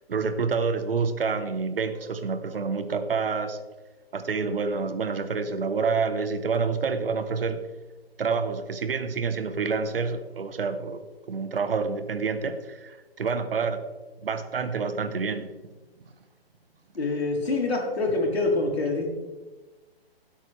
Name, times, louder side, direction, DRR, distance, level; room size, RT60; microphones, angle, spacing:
voice 1, 0.1-3.6 4.1-7.7 8.2-11.0 11.3-13.9 14.2-15.5, right 5 dB, 65° right, 10 dB, 1.2 m, -28 dB
voice 2, 17.0-19.1, left 3 dB, 85° left, -1 dB, 3.6 m, -25 dB
16.5 x 8.3 x 3.4 m, 1.2 s
hypercardioid pair, 165°, 31 cm